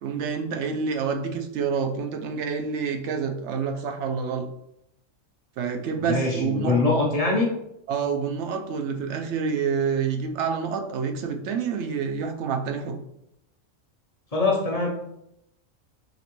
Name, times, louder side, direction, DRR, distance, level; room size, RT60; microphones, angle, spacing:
voice 1, 0.0-4.5 5.6-6.8 7.9-13.0, right 6 dB, 65° right, 5 dB, 0.8 m, -28 dB
voice 2, 6.0-7.5 14.3-14.9, left 3 dB, 35° left, -2 dB, 0.7 m, -23 dB
5.0 x 3.0 x 3.0 m, 0.82 s
omnidirectional pair, 1.4 m